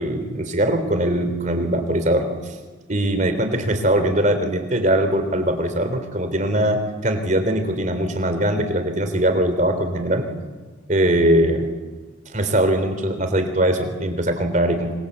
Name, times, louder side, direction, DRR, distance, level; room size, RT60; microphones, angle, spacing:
voice 1, 0.0-2.3 2.9-10.3 10.9-11.7 12.3-14.9, right 1 dB, 40° right, 7 dB, 3.7 m, -21 dB
27.5 x 26.0 x 8.3 m, 1.3 s
head